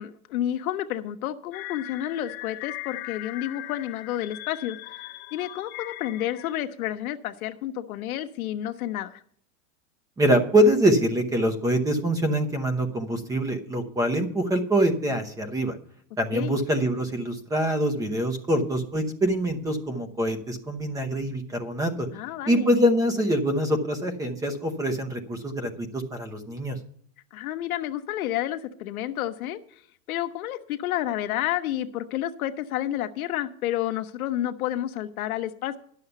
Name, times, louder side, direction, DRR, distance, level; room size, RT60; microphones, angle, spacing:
voice 1, 0.0-9.2 16.3-16.6 22.1-22.7 27.3-29.6 30.1-35.8, left 12 dB, 85° left, 7 dB, 0.9 m, -30 dB
sound 1, 1.5-6.6, left 18 dB, 45° left, 0.8 m, -39 dB
voice 2, 10.2-15.8 16.2-22.1 22.5-26.8, right 1 dB, 10° right, 8 dB, 0.8 m, -24 dB
11.0 x 6.6 x 6.7 m, 0.63 s
supercardioid pair, 165°, 42 cm